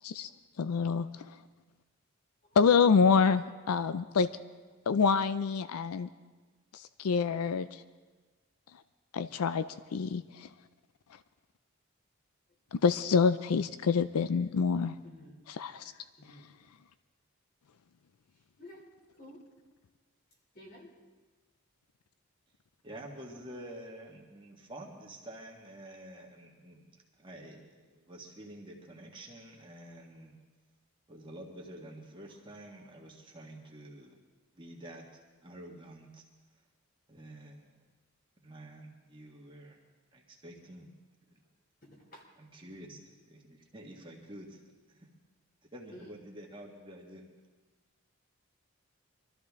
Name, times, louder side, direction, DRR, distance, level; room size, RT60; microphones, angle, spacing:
voice 1, 0.6-1.1 2.6-4.3 4.9-6.1 6.7-7.7 9.1-9.6 9.9-10.5 12.7-14.9 15.5-15.8, left 5 dB, 85° left, 13 dB, 0.4 m, -26 dB
voice 2, 15.0-15.4 16.2-16.4 18.6-18.8 19.2-19.4 20.5-20.9 23.2-23.4 42.1-42.2 42.7-43.0 45.9-46.1, left 1 dB, 40° left, 0 dB, 3.1 m, -51 dB
voice 3, 22.8-26.8 27.2-30.3 31.1-34.2 34.5-35.0 35.4-36.2 37.1-37.7 38.4-39.8 40.1-40.9 41.3-41.4 42.4-44.6 44.9-45.1 45.7-47.2, right 1 dB, 20° right, -1 dB, 1.6 m, -48 dB
23.5 x 13.5 x 3.6 m, 1.3 s
head